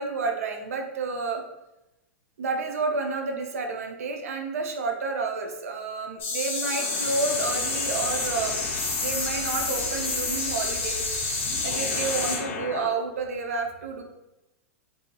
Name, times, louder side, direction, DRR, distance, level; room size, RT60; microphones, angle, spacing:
voice 1, 0.0-1.4 2.4-8.6 9.0-11.0 11.6-14.0, right 4 dB, 80° right, 4 dB, 0.5 m, -30 dB
sound 1, 6.2-12.4, left 3 dB, 25° left, 0.7 m, -29 dB
sound 2, 6.6-13.0, left 5 dB, 60° left, 0.4 m, -36 dB
2.7 x 2.7 x 2.2 m, 0.95 s
hypercardioid pair, 115°, 8 cm